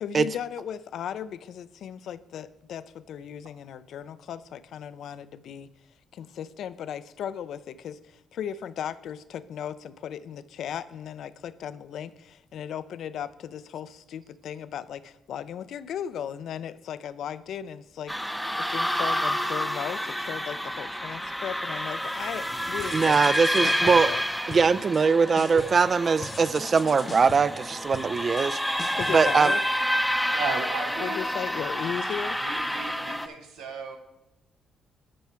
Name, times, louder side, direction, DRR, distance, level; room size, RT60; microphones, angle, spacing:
voice 1, 0.0-5.7 6.1-18.2 18.6-24.2 29.0-29.6 31.0-32.4, left 9 dB, 70° left, 15 dB, 0.4 m, -36 dB
sound 1, 18.1-33.3, equal, ahead, 0.6 m, -29 dB
sound 2, 22.8-24.2 24.5-25.1 25.4-25.9 26.2-30.2, left 4 dB, 45° left, 0.9 m, -42 dB
voice 2, 22.9-24.1 24.5-28.6 29.1-29.5, right 5 dB, 45° right, 18 dB, 0.3 m, -22 dB
voice 3, 30.3-31.2 32.4-34.0, right 5 dB, 90° right, 4 dB, 1.1 m, -35 dB
11.5 x 4.5 x 4.4 m, 0.91 s
supercardioid pair, 65°, 0 cm